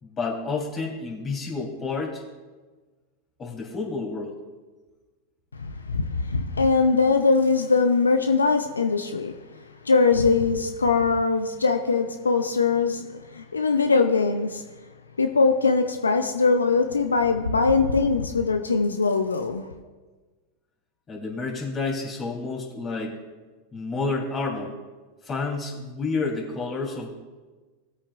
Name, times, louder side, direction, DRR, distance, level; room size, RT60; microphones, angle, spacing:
voice 1, 0.0-2.2 3.4-4.3 21.1-23.1 23.7-24.7 25.2-27.1, left 3 dB, 30° left, 3.6 m, -30 dB
voice 2, 5.5-14.6 15.2-19.7, left 4 dB, 90° left, 0.6 m, -22 dB
18.5 x 8.5 x 2.5 m
hypercardioid pair, 90°, 0 cm